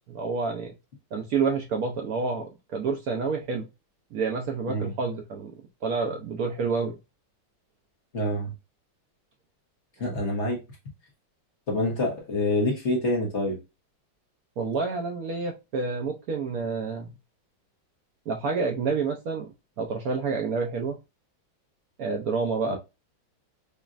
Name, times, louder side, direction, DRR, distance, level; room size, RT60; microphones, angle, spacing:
voice 1, 0.1-0.7 1.1-3.7 4.1-5.5 5.8-7.0 14.6-17.1 18.3-19.5 19.8-21.0 22.0-22.8, right 4 dB, 70° right, 0.8 m, -28 dB
voice 2, 8.1-8.5 10.0-10.6 11.7-13.6 22.7-22.8, left 1 dB, 45° left, 1.1 m, -26 dB
5.1 x 2.4 x 2.5 m
omnidirectional pair, 2.2 m